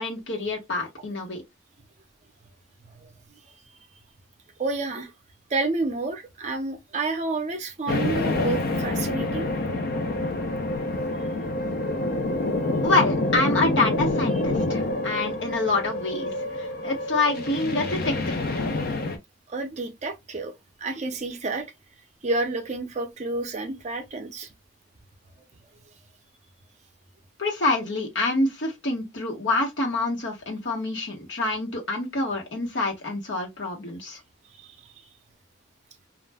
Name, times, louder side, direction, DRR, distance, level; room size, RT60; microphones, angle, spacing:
voice 1, 0.0-1.4 12.8-18.4 27.4-34.2, left 2 dB, 65° left, 1.1 m, -27 dB
voice 2, 4.6-5.1 5.5-9.5 19.5-20.5 20.8-21.7 22.2-24.5 34.5-34.9, right 3 dB, 35° right, 0.5 m, -30 dB
sound 1, 7.9-19.2, left 2 dB, 50° left, 0.5 m, -27 dB
2.4 x 2.1 x 3.3 m
head